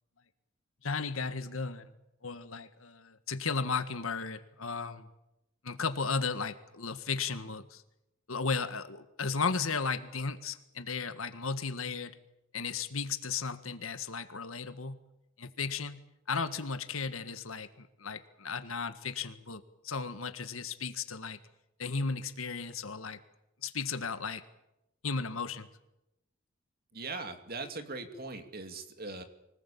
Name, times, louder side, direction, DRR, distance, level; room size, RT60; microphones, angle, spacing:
voice 1, 0.8-1.9 2.2-5.1 5.6-7.8 8.3-12.1 12.5-15.0 15.4-16.0 16.3-21.4 21.8-23.2 23.6-24.4 25.0-25.7, left 5 dB, 85° left, 10 dB, 1.8 m, -35 dB
voice 2, 26.9-29.2, right 3 dB, 45° right, 7 dB, 2.5 m, -40 dB
24.5 x 19.5 x 8.6 m, 0.89 s
head